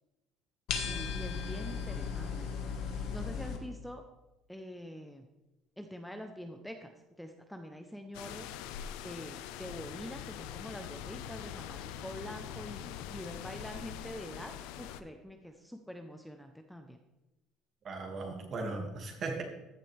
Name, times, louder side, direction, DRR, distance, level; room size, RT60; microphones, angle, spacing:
sound 1, 0.7-3.6, left 6 dB, 70° left, 1.4 m, -36 dB
voice 1, 0.9-2.5 3.1-4.0 4.5-5.3 5.8-8.5 9.0-14.5 14.8-17.0, equal, ahead, 5 dB, 0.7 m, -45 dB
sound 2, 8.1-15.0, left 10 dB, 90° left, 0.5 m, -43 dB
voice 2, 17.8-19.4, right 3 dB, 45° right, 3 dB, 2.1 m, -37 dB
14.5 x 7.4 x 3.4 m, 1.0 s
cardioid pair, 115°, 0 cm